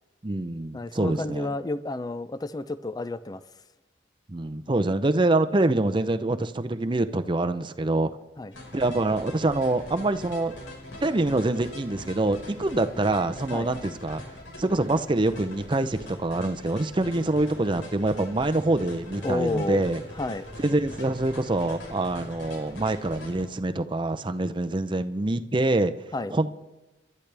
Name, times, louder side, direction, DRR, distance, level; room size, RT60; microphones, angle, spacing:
voice 1, 0.2-1.5 4.3-8.1 8.7-10.6 11.0-14.2 14.6-20.0 20.6-25.9 26.3-26.5, right 2 dB, 25° right, 9 dB, 0.6 m, -25 dB
voice 2, 0.7-3.4 8.4-8.5 13.5-13.7 19.2-19.8 20.1-20.5 26.1-26.3, left 2 dB, 20° left, 13 dB, 0.5 m, -30 dB
sound 1, 8.5-23.4, left 1 dB, 75° left, 4.8 m, -42 dB
28.0 x 12.0 x 3.4 m, 1.1 s
head